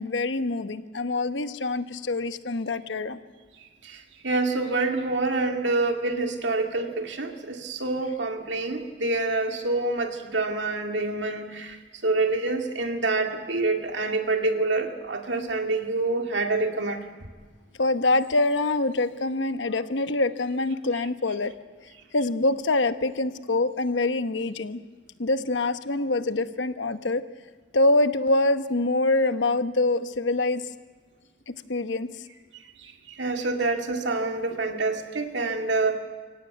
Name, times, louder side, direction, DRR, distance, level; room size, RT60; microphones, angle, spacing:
voice 1, 0.0-3.2 17.8-21.5 22.1-24.8 25.2-27.2 27.7-30.6 31.5-32.1, left 2 dB, 85° left, 11 dB, 1.0 m, -25 dB
voice 2, 3.8-17.0 32.8-36.0, right 3 dB, 80° right, 4 dB, 2.2 m, -27 dB
24.0 x 17.0 x 9.3 m, 1.4 s
head